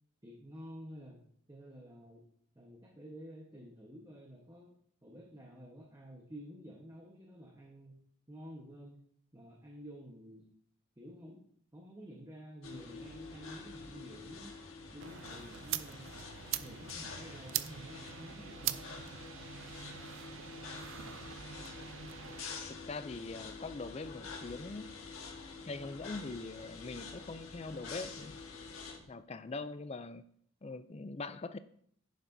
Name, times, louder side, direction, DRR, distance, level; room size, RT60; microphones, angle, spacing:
voice 1, 0.2-1.2 1.5-2.2 2.5-4.7 5.0-8.0 8.3-9.0 9.3-10.4 11.0-11.4 11.7-14.6 14.9-16.2 16.6-18.8 21.5-21.8, equal, 15° right, -1 dB, 1.1 m, -51 dB
sound 1, 12.6-29.0, left 4 dB, 70° left, 1.5 m, -47 dB
sound 2, 15.0-22.5, right 12 dB, 60° right, 0.4 m, -42 dB
voice 2, 21.0-21.4 22.7-25.0 25.7-28.4 29.1-30.2 30.6-31.6, left 3 dB, 30° left, 12 dB, 0.4 m, -43 dB
10.5 x 9.3 x 2.7 m, 0.64 s
head